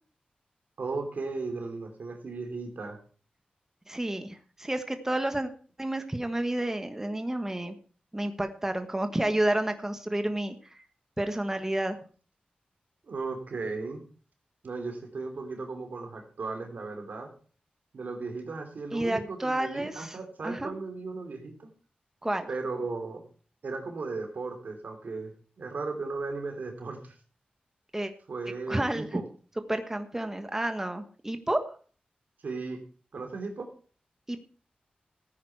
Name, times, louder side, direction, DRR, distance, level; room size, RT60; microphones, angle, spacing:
voice 1, 0.8-3.0 13.1-14.1 14.6-17.3 17.9-21.7 22.5-23.2 23.6-27.1 28.3-29.2 32.4-32.8 33.1-33.7, right 3 dB, 75° right, 5 dB, 2.9 m, -36 dB
voice 2, 3.9-5.5 5.8-7.7 8.1-10.8 11.2-12.0 18.9-20.2 20.4-20.7 22.2-22.5 27.9-28.1 28.7-29.2 29.7-31.7 34.3-34.4, right 1 dB, 15° right, 7 dB, 1.3 m, -30 dB
15.0 x 9.5 x 4.7 m, 0.41 s
wide cardioid pair, 80°, 3 cm